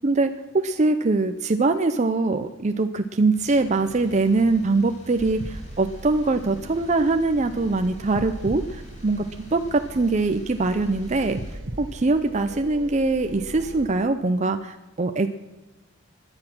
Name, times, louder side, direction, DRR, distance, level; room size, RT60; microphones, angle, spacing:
voice 1, 0.0-9.2 9.5-11.4 11.8-15.3, right 3 dB, 35° right, 7 dB, 0.6 m, -23 dB
sound 1, 3.3-11.6, equal, 35° left, 2.4 m, -47 dB
sound 2, 5.2-13.9, right 1 dB, 65° right, 1.4 m, -39 dB
16.5 x 10.5 x 6.1 m, 1.1 s
head